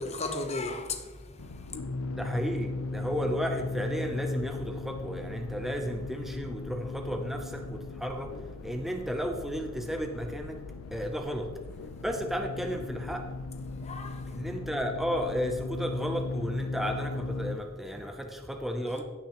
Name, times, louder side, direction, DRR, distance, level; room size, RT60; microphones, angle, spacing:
voice 1, 0.0-1.8 13.8-14.3, left 3 dB, 30° left, 0.9 m, -36 dB
sound 1, 1.4-17.6, left 3 dB, 65° left, 0.5 m, -37 dB
voice 2, 2.1-10.6 10.9-11.5 12.0-13.3 14.3-19.0, equal, ahead, 0.6 m, -33 dB
16.5 x 5.9 x 3.0 m
head